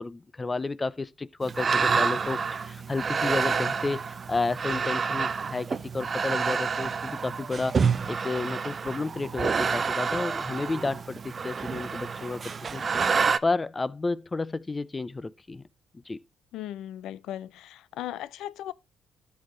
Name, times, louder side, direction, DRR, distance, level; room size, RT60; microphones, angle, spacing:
voice 1, 0.0-7.8 8.1-12.4 12.7-12.8 13.1-15.6 16.1-16.2, left 3 dB, 25° left, 0.5 m, -31 dB
sound 1, 1.4-13.4, right 5 dB, 40° right, 0.5 m, -28 dB
voice 2, 16.5-18.7, left 12 dB, 85° left, 0.4 m, -37 dB
12.5 x 5.5 x 3.1 m
cardioid pair, 90°, 0 cm